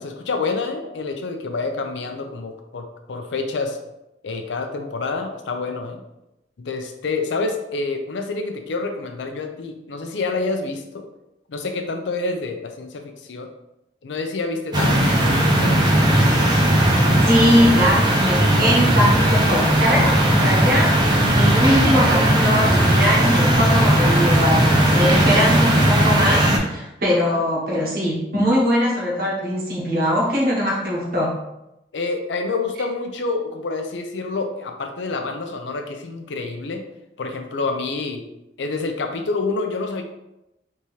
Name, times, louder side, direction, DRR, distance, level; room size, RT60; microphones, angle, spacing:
voice 1, 0.0-3.8 4.2-6.0 6.6-11.0 11.5-13.5 14.0-15.0 15.3-15.8 27.1-27.4 31.9-36.8 37.2-38.2 38.6-40.0, left 3 dB, 90° left, 5 dB, 0.5 m, -27 dB
sound 1, 14.7-26.6, right 1 dB, 25° right, 0.6 m, -17 dB
voice 2, 17.2-31.3, equal, 55° right, -4 dB, 1.0 m, -21 dB
3.5 x 2.8 x 3.1 m, 0.90 s
head